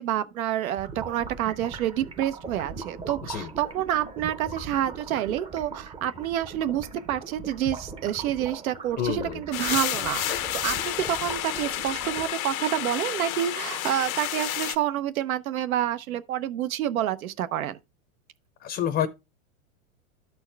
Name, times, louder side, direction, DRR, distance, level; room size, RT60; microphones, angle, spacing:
voice 1, 0.0-17.8, right 11 dB, 90° right, 0.9 m, -28 dB
sound 1, 0.7-12.3, right 4 dB, 15° right, 0.6 m, -40 dB
voice 2, 9.0-9.4 18.6-19.1, left 9 dB, 25° left, 0.6 m, -28 dB
sound 2, 9.5-14.8, left 13 dB, 85° left, 0.9 m, -30 dB
12.5 x 4.5 x 3.3 m
supercardioid pair, 135°, 41 cm